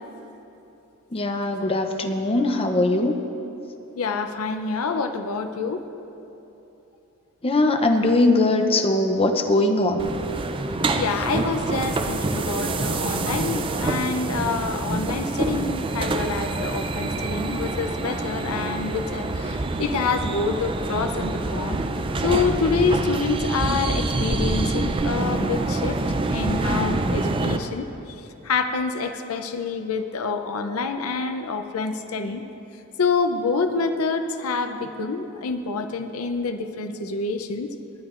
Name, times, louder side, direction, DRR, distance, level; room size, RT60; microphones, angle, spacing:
voice 1, 1.1-3.2 7.4-10.1, left 2 dB, 25° left, 5 dB, 0.6 m, -21 dB
voice 2, 4.0-5.8 11.0-21.8 22.2-26.0 26.3-27.9 28.4-32.4 33.0-37.7, left 4 dB, 80° left, 7 dB, 0.6 m, -27 dB
sound 1, 10.0-27.6, right 2 dB, 25° right, 0.4 m, -26 dB
19.0 x 9.9 x 2.5 m, 2.9 s
head